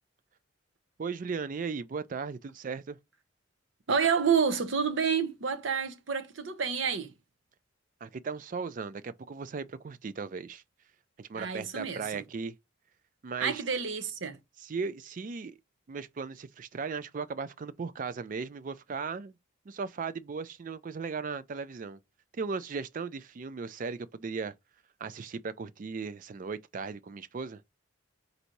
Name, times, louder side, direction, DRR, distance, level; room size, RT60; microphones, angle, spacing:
voice 1, 1.0-3.0 8.0-10.6 11.2-12.5 13.2-13.6 14.6-15.6 15.9-19.4 19.7-22.0 22.3-24.5 25.0-27.6, right 5 dB, 40° right, 0.4 m, -37 dB
voice 2, 3.9-7.1 11.3-12.2 13.4-14.4, right 6 dB, 70° right, 0.7 m, -29 dB
4.0 x 2.7 x 4.5 m
head